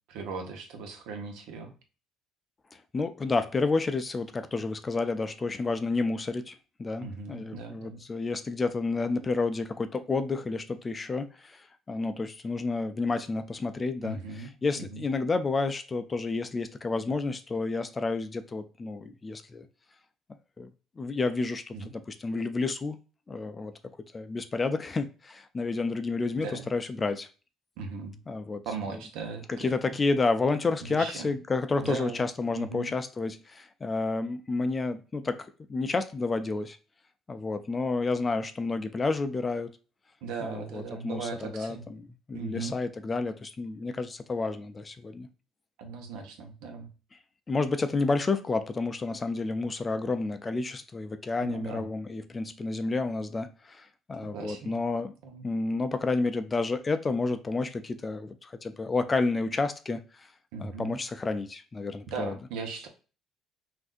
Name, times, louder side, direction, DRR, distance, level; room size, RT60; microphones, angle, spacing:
voice 1, 0.1-1.7 7.0-8.0 14.0-14.5 14.8-15.0 21.7-21.9 26.4-26.6 27.8-28.2 28.6-29.7 30.9-31.3 31.8-32.2 32.5-32.9 40.2-41.8 42.3-42.7 45.8-46.9 51.4-51.9 54.3-54.8 55.2-55.4 60.5-61.0 62.1-62.9, right 4 dB, 85° right, 4 dB, 1.0 m, -38 dB
voice 2, 2.9-6.5 6.8-19.7 20.6-20.7 21.0-23.0 23.3-23.7 24.1-27.3 28.3-28.6 29.5-35.4 35.7-36.8 37.3-39.7 40.4-45.3 47.5-55.1 55.4-60.3 60.6-62.3, left 3 dB, 20° left, 10 dB, 0.3 m, -30 dB
6.0 x 2.6 x 2.5 m, 0.35 s
cardioid pair, 160°, 0 cm